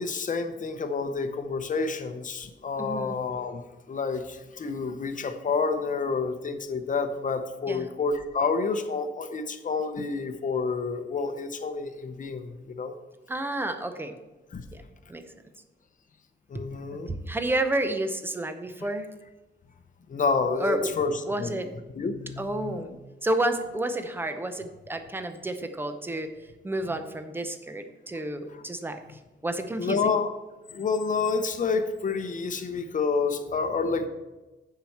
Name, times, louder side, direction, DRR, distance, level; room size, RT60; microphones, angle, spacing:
voice 1, 0.0-3.6 3.9-12.9 14.5-14.6 16.5-17.1 20.1-21.6 21.9-22.8 28.5-28.6 29.8-30.3 30.7-34.1, left 4 dB, 40° left, 8 dB, 0.8 m, -29 dB
voice 2, 2.8-3.2 7.7-7.8 13.3-14.2 15.1-15.2 16.5-16.6 17.1-19.1 20.6-20.9 21.2-21.7 22.4-22.9 23.2-26.3 26.6-29.0 29.4-30.0, right 1 dB, 10° right, 8 dB, 0.7 m, -30 dB
7.4 x 5.8 x 7.1 m, 1.1 s
wide cardioid pair, 155°, 20 cm